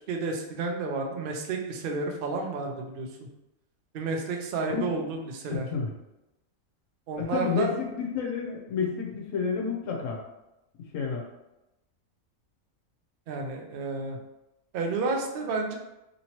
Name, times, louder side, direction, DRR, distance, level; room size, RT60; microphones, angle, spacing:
voice 1, 0.1-3.3 3.9-5.7 7.1-7.7 13.3-14.2 14.7-15.8, right 3 dB, 65° right, 2 dB, 0.5 m, -31 dB
voice 2, 5.5-5.9 7.2-10.2 10.9-11.2, left 6 dB, 70° left, 0 dB, 1.0 m, -30 dB
2.9 x 2.9 x 2.8 m, 0.94 s
omnidirectional pair, 1.5 m